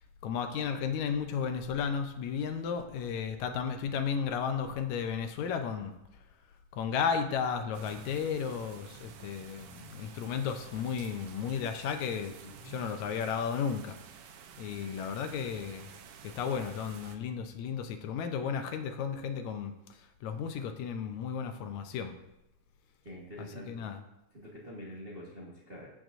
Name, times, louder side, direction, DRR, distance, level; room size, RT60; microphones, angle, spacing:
voice 1, 0.2-5.9 6.7-12.4 12.6-14.0 14.6-15.9 16.2-22.1 23.4-24.0, left 7 dB, 80° left, 7 dB, 1.9 m, -34 dB
sound 1, 7.7-17.2, right 8 dB, 85° right, 2.2 m, -51 dB
voice 2, 12.4-13.0 23.0-23.8 24.3-25.9, equal, 40° right, -5 dB, 0.8 m, -46 dB
15.0 x 6.2 x 2.6 m, 0.92 s
omnidirectional pair, 3.5 m